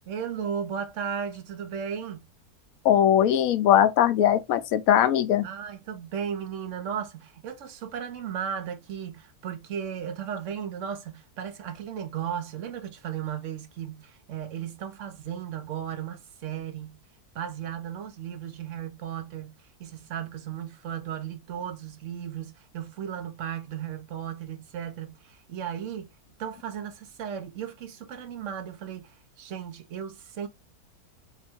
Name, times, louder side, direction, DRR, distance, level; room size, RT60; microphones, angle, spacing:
voice 1, 0.1-2.3 5.4-17.0 17.3-26.1 26.4-30.5, right 8 dB, 60° right, 1.0 m, -35 dB
voice 2, 2.8-5.5, left 10 dB, 70° left, 1.0 m, -20 dB
4.5 x 2.2 x 4.3 m
omnidirectional pair, 1.6 m